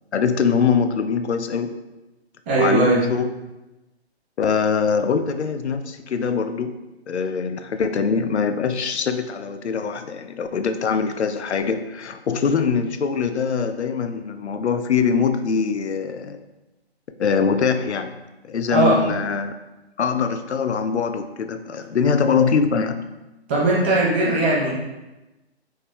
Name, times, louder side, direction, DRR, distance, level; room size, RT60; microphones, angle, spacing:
voice 1, 0.1-1.8 2.6-3.3 4.4-6.8 7.1-16.4 17.2-18.2 18.4-19.5 20.0-23.0, left 6 dB, 85° left, 8 dB, 0.5 m, -23 dB
voice 2, 2.5-3.1 18.7-19.0 23.5-24.7, right 2 dB, 10° right, -6 dB, 0.4 m, -19 dB
5.7 x 3.2 x 2.2 m, 1.0 s
figure-of-eight pair, 140°, 33 cm